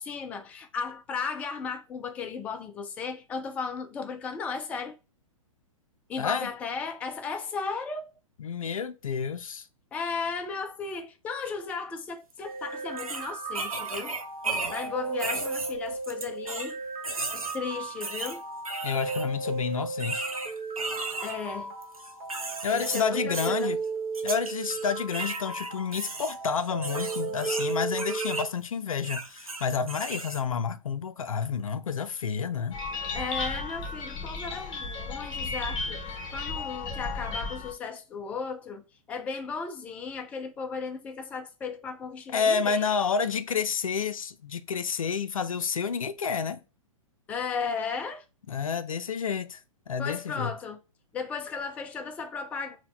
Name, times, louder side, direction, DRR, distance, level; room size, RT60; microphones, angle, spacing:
voice 1, 0.0-5.0 6.1-8.1 9.9-14.2 14.7-16.8 17.3-18.4 21.2-21.7 22.7-23.8 33.1-42.9 47.3-48.3 50.0-50.8 51.1-52.8, left 5 dB, 10° left, 0.3 m, -35 dB
voice 2, 6.2-6.5 8.4-9.7 18.8-20.3 22.6-23.8 24.2-32.8 42.3-46.6 48.5-49.6 49.9-50.5, left 6 dB, 75° left, 0.4 m, -29 dB
sound 1, 12.3-12.4 13.0-14.9 15.2-16.7 17.0-17.6 18.0-19.3 20.0-21.3 21.8-23.0 23.3-23.6 24.1-24.9 25.1-28.5 29.0-30.4, right 3 dB, 85° right, 0.8 m, -35 dB
sound 2, 12.5-28.4, right 4 dB, 35° right, 1.3 m, -35 dB
sound 3, 32.7-37.7, left 3 dB, 25° left, 0.9 m, -34 dB
4.1 x 2.2 x 3.8 m
figure-of-eight pair, 110°, 18 cm